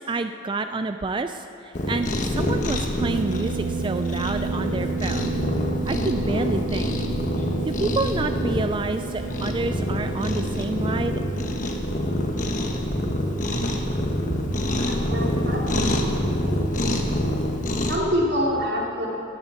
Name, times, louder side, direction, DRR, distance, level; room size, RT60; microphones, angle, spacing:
voice 1, 0.0-5.3 5.9-7.0 7.7-11.2 13.5-13.7 14.3-14.6, right 3 dB, 25° right, 8 dB, 0.3 m, -29 dB
Cat, 1.7-18.0, left 1 dB, 40° left, 1.2 m, -26 dB
sound 1, 3.0-12.0, right 5 dB, 80° right, 0.5 m, -32 dB
voice 2, 14.8-16.6 17.9-19.1, equal, 60° right, -3 dB, 2.9 m, -27 dB
17.5 x 15.0 x 4.3 m, 2.8 s
head